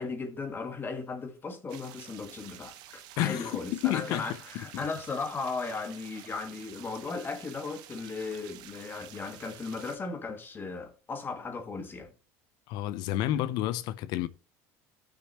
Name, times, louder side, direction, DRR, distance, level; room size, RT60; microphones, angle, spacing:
voice 1, 0.0-12.1, left 4 dB, 30° left, 1.6 m, -36 dB
sound 1, 1.7-10.0, right 12 dB, 65° right, 1.0 m, -50 dB
voice 2, 3.2-4.3 4.7-4.8 12.7-14.3, left 14 dB, 65° left, 0.6 m, -30 dB
15.5 x 6.5 x 3.0 m
supercardioid pair, 95°, 8 cm